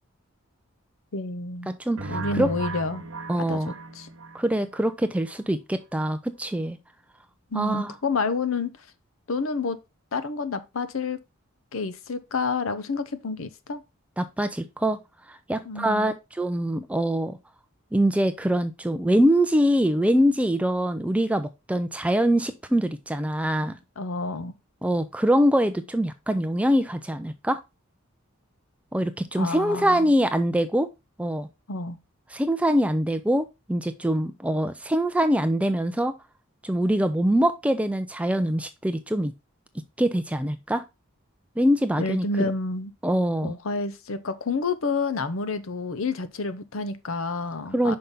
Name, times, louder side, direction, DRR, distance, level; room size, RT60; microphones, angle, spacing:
voice 1, 1.1-1.7 2.1-3.0 3.4-3.6 3.9-4.1 7.5-8.7 9.3-9.8 10.1-11.2 11.7-13.8 15.6-16.1 24.0-24.5 29.4-30.1 31.7-32.0 42.0-42.9 43.4-48.0, left 3 dB, 75° left, 0.7 m, -29 dB
voice 2, 1.7-2.5 3.3-3.7 4.3-6.8 7.5-7.9 14.2-15.0 15.3-17.4 17.9-23.8 24.8-27.6 28.9-30.9 31.2-31.5 32.3-36.1 36.6-39.3 40.0-40.8 41.6-42.5 43.0-43.5 47.7-48.0, equal, 5° right, 0.4 m, -24 dB
sound 1, 2.0-4.8, right 3 dB, 75° right, 1.2 m, -36 dB
5.7 x 5.3 x 3.6 m
head